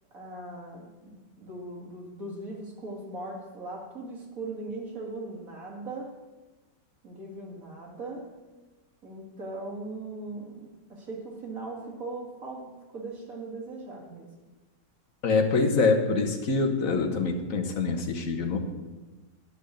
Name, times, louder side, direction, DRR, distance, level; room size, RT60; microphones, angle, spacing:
voice 1, 0.1-6.2 7.0-8.3 9.0-14.3, right 2 dB, 50° right, -2 dB, 2.7 m, -39 dB
voice 2, 15.2-18.6, left 4 dB, 50° left, 4 dB, 1.6 m, -25 dB
10.0 x 6.2 x 8.8 m, 1.2 s
omnidirectional pair, 1.9 m